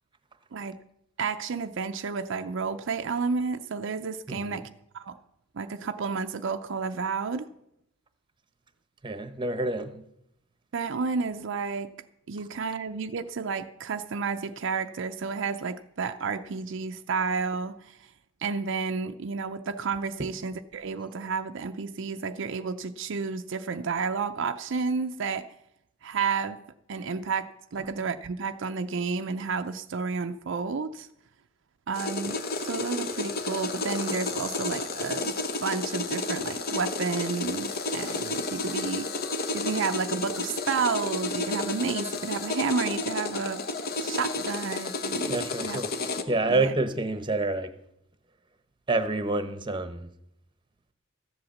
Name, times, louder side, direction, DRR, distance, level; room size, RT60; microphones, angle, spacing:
voice 1, 1.2-4.7 4.9-5.2 5.5-7.5 10.7-11.9 12.3-18.0 18.4-25.5 26.0-26.6 26.9-31.1 31.9-35.3 35.6-39.1 39.5-43.6 44.0-45.8 46.5-46.7, right 5 dB, 65° right, 0.5 m, -31 dB
voice 2, 4.3-4.6 9.0-10.0 20.2-20.3 45.3-45.9 46.3-47.7 48.9-50.1, right 2 dB, 25° right, 0.9 m, -28 dB
sound 1, 31.9-46.2, left 3 dB, 50° left, 1.0 m, -31 dB
14.0 x 7.9 x 7.1 m
head